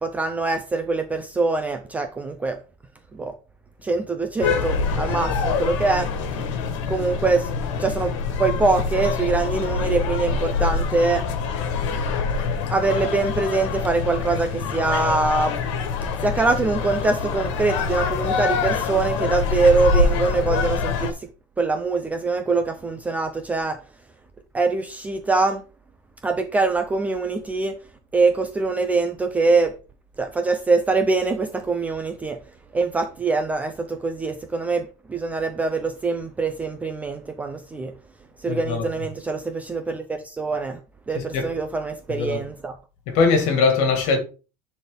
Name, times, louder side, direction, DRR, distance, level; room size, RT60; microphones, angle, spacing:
voice 1, 0.0-2.6 3.1-3.3 3.8-6.1 6.9-7.5 7.8-8.1 8.4-11.2 11.8-12.1 12.7-15.5 16.2-21.3 21.6-23.8 24.5-25.6 26.2-27.8 28.1-29.7 30.2-32.4 32.7-37.9 38.4-40.8 41.1-42.8, right 3 dB, 10° right, 0.5 m, -23 dB
sound 1, 4.4-21.1, left 5 dB, 75° left, 1.6 m, -25 dB
voice 2, 38.5-38.8 41.1-41.6 42.1-42.4 43.1-44.2, left 4 dB, 45° left, 2.2 m, -21 dB
10.0 x 4.2 x 3.8 m
cardioid pair, 175°, 16 cm